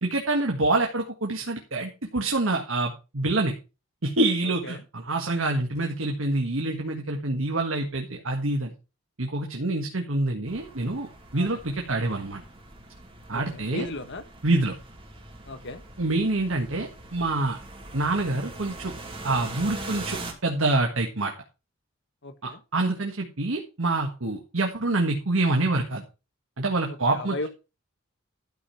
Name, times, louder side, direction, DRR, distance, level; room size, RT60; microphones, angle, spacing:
voice 1, 0.0-3.5 4.0-8.7 9.2-11.1 11.3-12.4 13.3-13.9 14.4-14.7 16.0-17.6 17.9-18.9 19.2-21.3 22.4-26.0 26.6-27.5, right 2 dB, 80° right, 2 dB, 1.6 m, -26 dB
sound 1, 10.5-20.3, right 2 dB, 30° right, 2.6 m, -42 dB
voice 2, 13.3-14.2 15.5-15.8 22.2-22.6 27.1-27.5, left 2 dB, 60° left, 10 dB, 1.5 m, -35 dB
12.5 x 5.2 x 5.7 m, 0.30 s
head